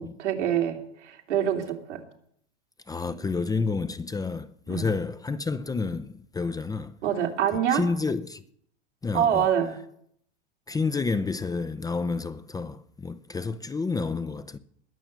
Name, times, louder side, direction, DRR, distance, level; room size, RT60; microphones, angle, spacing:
voice 1, 0.0-2.0 4.7-4.9 7.0-7.8 9.1-9.8, right 9 dB, 85° right, 3.1 m, -26 dB
voice 2, 2.9-6.9 7.5-8.4 9.0-9.5 10.7-14.6, left 4 dB, 10° left, 0.6 m, -30 dB
20.5 x 6.9 x 7.5 m
hypercardioid pair, 110°, 34 cm